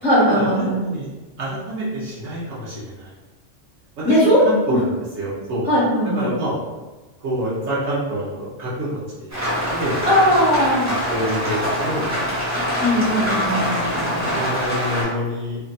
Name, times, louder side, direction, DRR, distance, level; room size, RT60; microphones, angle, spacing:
voice 1, 0.0-0.8 4.0-4.5 5.6-6.3 10.1-10.9 12.8-14.4, equal, 10° left, -11 dB, 0.8 m, -19 dB
voice 2, 1.4-3.1 4.0-5.6 6.2-6.6 7.2-10.0 10.9-12.7 14.3-15.6, right 1 dB, 80° right, -8 dB, 1.0 m, -27 dB
Rain, 9.3-15.0, equal, 20° right, 0.6 m, -24 dB
2.7 x 2.7 x 2.2 m, 1.2 s
omnidirectional pair, 1.2 m